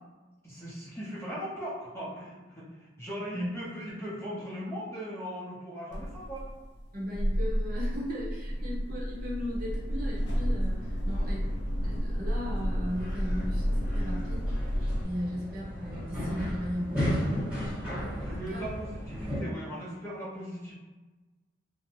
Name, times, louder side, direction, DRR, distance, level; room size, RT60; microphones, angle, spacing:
voice 1, 0.4-6.5 11.1-11.4 15.2-15.4 18.2-20.7, equal, 15° left, -8 dB, 0.7 m, -39 dB
sound 1, 5.9-15.0, equal, 65° left, 0.5 m, -31 dB
voice 2, 6.9-11.5 11.8-14.5 15.0-18.7, equal, 50° right, -6 dB, 0.8 m, -37 dB
sound 2, 12.9-19.4, equal, 5° right, 1.2 m, -34 dB
2.6 x 2.1 x 2.8 m, 1.2 s
head